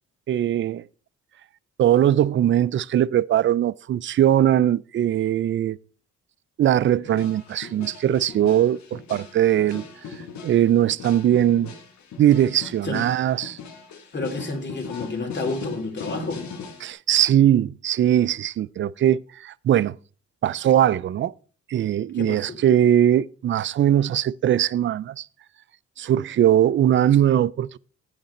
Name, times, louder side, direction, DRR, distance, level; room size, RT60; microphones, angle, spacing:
voice 1, 0.3-0.8 1.8-5.8 6.6-9.8 10.4-11.7 12.2-13.6 16.8-20.0 20.4-21.3 21.7-25.3 26.0-27.8, right 11 dB, 40° right, 0.4 m, -20 dB
sound 1, 7.0-16.9, left 5 dB, 70° left, 1.7 m, -39 dB
voice 2, 14.1-16.4 22.1-22.6, left 3 dB, 35° left, 2.7 m, -30 dB
9.0 x 8.5 x 4.2 m
cardioid pair, 90°, 30 cm